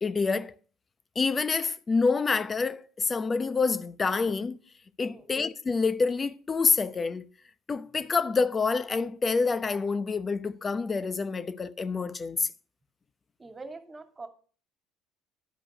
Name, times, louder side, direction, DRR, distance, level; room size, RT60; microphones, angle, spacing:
voice 1, 0.0-0.5 1.2-4.6 5.0-7.3 7.7-12.5, left 4 dB, 30° left, 0.7 m, -27 dB
voice 2, 5.0-5.3 13.4-14.3, right 3 dB, 25° right, 2.3 m, -44 dB
11.0 x 5.1 x 6.5 m
supercardioid pair, 80°, 0 cm